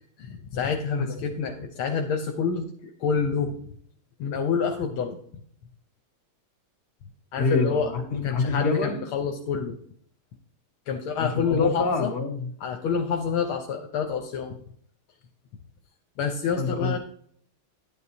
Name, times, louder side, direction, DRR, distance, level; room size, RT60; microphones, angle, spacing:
voice 1, 0.2-3.6 4.2-5.2 7.3-9.7 10.9-12.1 12.6-14.6 16.2-17.0, left 6 dB, 80° left, 5 dB, 1.7 m, -28 dB
voice 2, 7.4-9.0 11.4-12.5 16.6-17.0, left 3 dB, 50° left, 3 dB, 2.4 m, -26 dB
12.0 x 9.1 x 2.8 m, 0.62 s
omnidirectional pair, 2.3 m